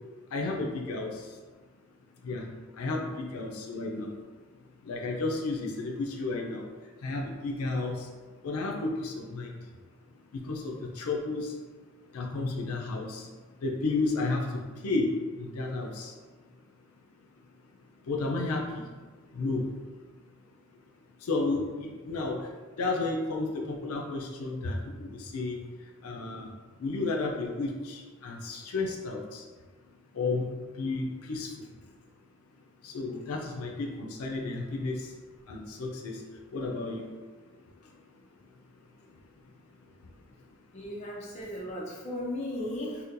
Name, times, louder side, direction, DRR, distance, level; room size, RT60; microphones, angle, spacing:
voice 1, 0.3-1.1 2.2-2.4 2.8-4.1 4.9-6.6 7.0-8.0 8.4-9.5 10.5-11.5 12.1-13.2 13.6-15.1 15.4-16.1 18.1-18.6 19.4-19.7 21.3-22.4 22.8-25.6 26.0-26.5 26.8-29.4 30.1-30.5 30.8-31.5 32.8-34.9 35.5-36.1 36.5-37.0, left 3 dB, 80° left, 0 dB, 0.4 m, -32 dB
voice 2, 40.7-43.0, left 1 dB, 30° left, -4 dB, 0.5 m, -36 dB
4.1 x 2.1 x 2.5 m, 1.4 s
head